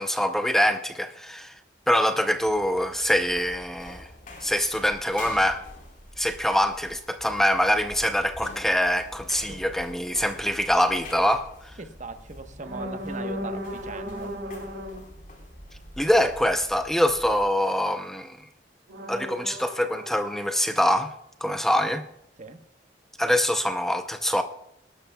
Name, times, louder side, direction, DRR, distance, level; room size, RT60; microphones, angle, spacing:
voice 1, 0.0-1.5 1.9-4.1 4.4-5.6 6.2-11.5 16.0-18.4 19.1-21.1 21.4-22.0 23.2-24.4, equal, ahead, 7 dB, 0.6 m, -24 dB
sound 1, 2.4-17.6, left 1 dB, 50° left, 4.4 m, -46 dB
sound 2, 9.6-9.8 10.8-11.0 12.6-15.0 18.9-20.9, equal, 90° right, 2.4 m, -36 dB
voice 2, 11.8-14.4 21.9-22.0 22.4-22.6, right 3 dB, 45° right, 8 dB, 1.1 m, -40 dB
19.5 x 12.5 x 2.3 m, 0.79 s
head